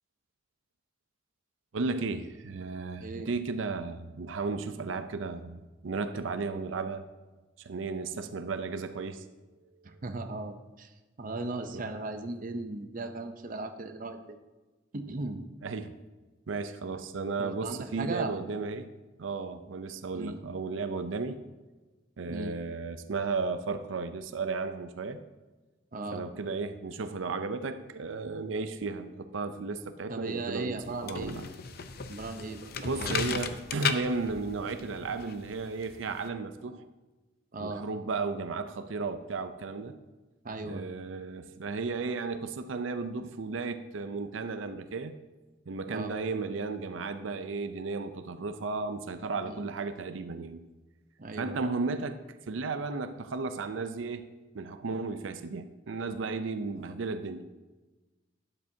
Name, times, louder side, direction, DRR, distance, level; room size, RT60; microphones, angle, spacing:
voice 1, 1.7-7.0 7.6-9.3 9.6-10.0 11.7-11.9 15.6-16.0 16.5-18.9 19.2-21.4 22.2-25.2 26.1-31.4 32.8-36.8 37.6-40.0 40.7-45.1 45.7-50.6 51.4-52.2 52.5-54.3 54.5-57.5, right 4 dB, 85° right, 10 dB, 0.5 m, -34 dB
voice 2, 9.8-10.9 11.2-14.4 14.9-15.4 17.4-18.4 20.1-20.4 22.3-22.5 25.9-26.2 30.1-31.3 32.1-33.2 37.5-37.8 40.4-40.9 45.9-46.1 49.5-49.6 51.2-51.6 56.8-56.9, right 2 dB, 45° right, 7 dB, 0.7 m, -37 dB
sound 1, 30.8-36.3, left 5 dB, 55° left, 0.6 m, -36 dB
12.0 x 9.9 x 2.7 m, 1.2 s
head